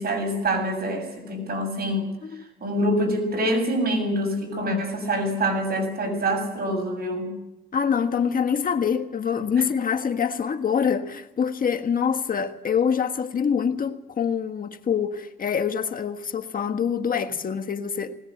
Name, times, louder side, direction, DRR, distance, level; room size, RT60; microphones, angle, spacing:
voice 1, 0.0-2.1 2.6-7.3, equal, 50° right, 7.5 m, -25 dB
voice 2, 7.7-18.2, left 7 dB, 45° left, 1.5 m, -25 dB
20.5 x 20.0 x 7.9 m
cardioid pair, 90°, 20 cm